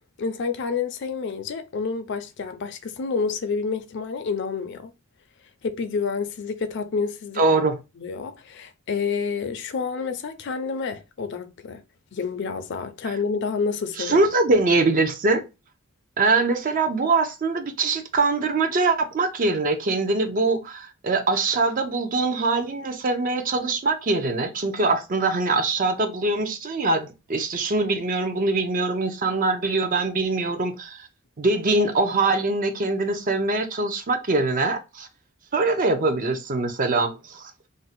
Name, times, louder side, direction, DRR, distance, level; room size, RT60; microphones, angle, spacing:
voice 1, 0.2-4.9 5.6-7.4 8.0-11.8 12.1-14.2, left 5 dB, 60° left, 0.4 m, -29 dB
voice 2, 7.4-7.8 14.0-15.4 16.2-31.0 31.4-35.1 35.5-37.5, right 3 dB, 40° right, 0.5 m, -23 dB
2.6 x 2.1 x 3.9 m
head